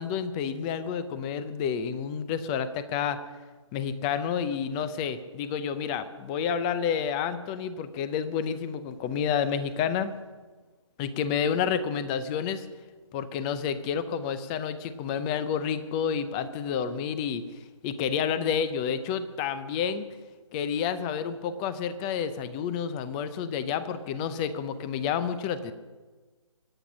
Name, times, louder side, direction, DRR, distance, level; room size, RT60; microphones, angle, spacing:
voice 1, 0.0-3.2 3.7-10.1 11.0-12.7 13.1-17.4 17.8-20.0 20.5-25.7, left 7 dB, 15° left, 13 dB, 0.6 m, -29 dB
24.5 x 8.5 x 6.2 m, 1.3 s
figure-of-eight pair, 155°, 17 cm